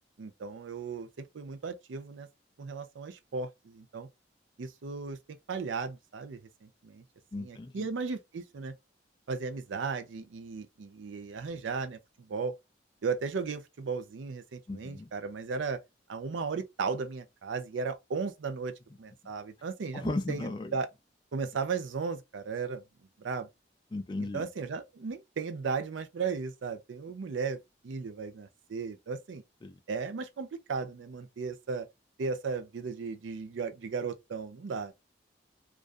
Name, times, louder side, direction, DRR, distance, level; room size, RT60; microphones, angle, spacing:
voice 1, 0.2-2.3 2.6-4.1 4.6-7.0 7.4-8.7 9.3-12.5 13.0-15.8 16.1-18.7 19.0-20.9 21.3-22.8 23.2-23.5 24.3-29.4 29.9-31.9 32.2-34.9, right 5 dB, 85° right, 0.5 m, -36 dB
voice 2, 7.3-7.9 14.7-15.1 19.9-20.7 23.9-24.5 29.6-29.8, left 2 dB, 25° left, 0.3 m, -36 dB
2.4 x 2.2 x 2.4 m
head